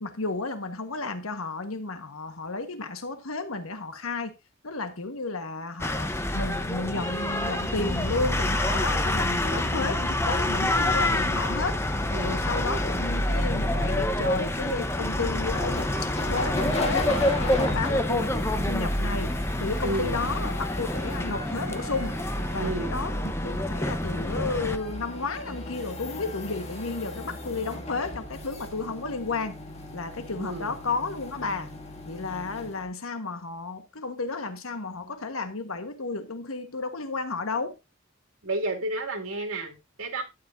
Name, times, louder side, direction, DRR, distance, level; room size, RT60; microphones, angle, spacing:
voice 1, 0.0-4.3 4.6-11.8 12.2-22.2 22.5-29.6 29.9-31.7 32.0-37.8, left 3 dB, 85° left, 1.3 m, -32 dB
sound 1, 5.8-24.8, left 1 dB, 10° left, 0.9 m, -27 dB
sound 2, 10.9-20.3, right 2 dB, 25° right, 4.8 m, -46 dB
voice 2, 12.1-12.5 19.8-20.2 22.6-23.0 30.4-30.7 38.4-40.2, right 2 dB, 90° right, 2.6 m, -31 dB
sound 3, 15.5-32.8, left 1 dB, 30° left, 2.3 m, -38 dB
12.5 x 9.7 x 2.6 m
head